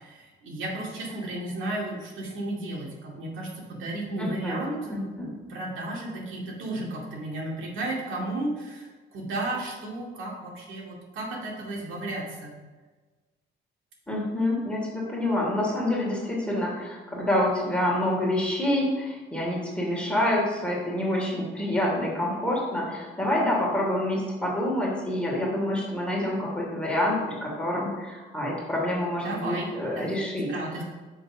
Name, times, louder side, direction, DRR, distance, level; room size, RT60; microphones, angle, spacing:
voice 1, 0.0-5.1 5.5-12.5 29.2-30.2 30.5-30.8, right 2 dB, 80° right, -2 dB, 2.3 m, -33 dB
voice 2, 4.2-4.6 4.9-5.3 14.1-30.5, left 1 dB, 5° left, -4 dB, 2.8 m, -27 dB
6.2 x 5.3 x 6.0 m, 1.3 s
cardioid pair, 90°, 20 cm